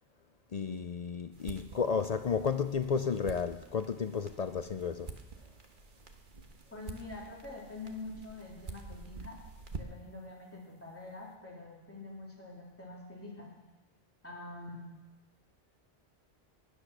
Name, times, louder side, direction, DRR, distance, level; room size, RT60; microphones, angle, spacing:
voice 1, 0.5-5.1, left 6 dB, 50° left, 0.5 m, -32 dB
sound 1, 1.3-10.2, right 4 dB, 50° right, 1.3 m, -48 dB
voice 2, 6.7-9.4 9.7-13.5 14.2-14.9, left 2 dB, 10° left, 3.0 m, -45 dB
16.5 x 10.0 x 6.0 m
omnidirectional pair, 1.1 m